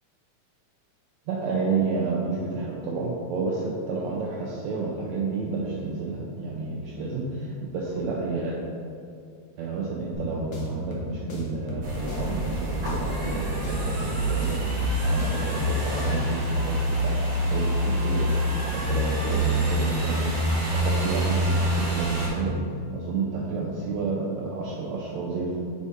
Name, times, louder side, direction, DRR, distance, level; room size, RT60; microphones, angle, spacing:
voice 1, 1.3-8.6 9.6-17.2 17.5-18.3 18.6-22.6 22.9-25.6, right 4 dB, 80° right, -3 dB, 1.7 m, -30 dB
sound 1, 10.1-16.4, left 1 dB, 80° left, 1.0 m, -35 dB
sound 2, 11.8-22.3, right 1 dB, 50° right, 1.7 m, -26 dB
5.4 x 4.6 x 4.2 m, 2.4 s
omnidirectional pair, 3.6 m